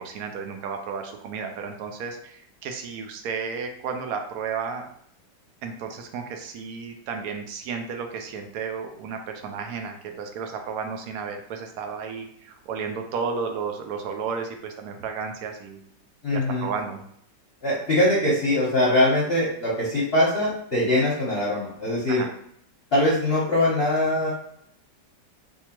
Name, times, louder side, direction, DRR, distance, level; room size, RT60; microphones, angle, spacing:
voice 1, 0.0-4.9 5.6-15.8 16.3-17.0 22.1-22.3, right 5 dB, 70° right, 4 dB, 0.8 m, -33 dB
voice 2, 16.2-16.7 17.6-22.3 22.9-24.3, left 1 dB, 45° left, -7 dB, 0.9 m, -22 dB
3.5 x 2.7 x 2.9 m, 0.69 s
omnidirectional pair, 2.0 m